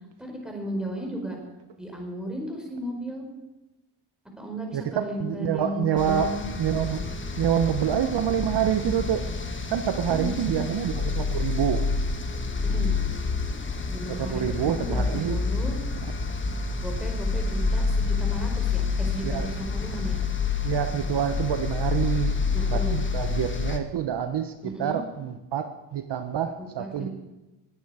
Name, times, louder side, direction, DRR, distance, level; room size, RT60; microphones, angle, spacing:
voice 1, 0.2-1.4 1.8-3.3 4.4-6.4 10.0-10.7 12.6-13.0 13.9-15.8 16.8-20.2 22.5-23.0 24.6-25.0 26.6-27.1, right 1 dB, ahead, 0 dB, 4.6 m, -35 dB
voice 2, 4.7-7.0 7.4-9.3 9.7-11.8 14.1-15.4 19.2-19.5 20.6-22.4 22.7-27.1, right 9 dB, 60° right, 8 dB, 1.0 m, -27 dB
sound 1, 6.0-23.8, left 4 dB, 25° left, 1.4 m, -28 dB
20.0 x 9.2 x 4.9 m, 1.0 s
cardioid pair, 90°, 47 cm